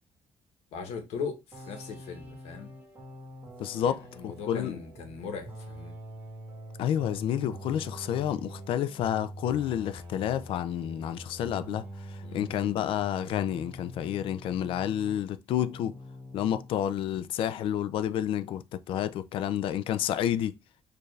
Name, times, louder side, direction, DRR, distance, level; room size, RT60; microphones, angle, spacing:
voice 1, 0.7-2.7 3.8-5.9 12.2-12.5, left 5 dB, 85° left, 1.0 m, -39 dB
sound 1, 1.5-15.3 15.5-16.7, equal, 20° right, 1.1 m, -45 dB
voice 2, 3.6-4.7 6.8-16.0 16.3-20.6, left 10 dB, 60° left, 0.3 m, -30 dB
4.4 x 2.5 x 3.2 m
cardioid pair, 160°, 10 cm